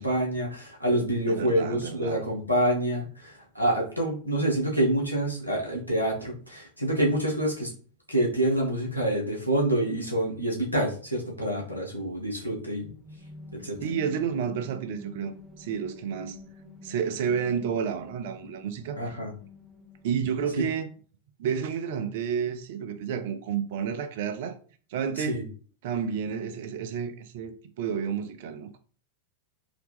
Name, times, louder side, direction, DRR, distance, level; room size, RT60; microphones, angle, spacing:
voice 1, 0.0-7.7 8.1-12.9 13.6-13.8 19.0-19.3 25.2-25.4, right 1 dB, 85° left, 1.4 m, -27 dB
voice 2, 1.3-2.2 13.8-16.4 16.8-19.0 20.0-20.9 21.4-24.6 24.9-25.4 25.8-28.8, right 7 dB, 50° right, 0.6 m, -30 dB
sound 1, 12.8-20.6, left 3 dB, 5° left, 0.8 m, -48 dB
3.9 x 2.9 x 3.5 m
figure-of-eight pair, 90°, 0 cm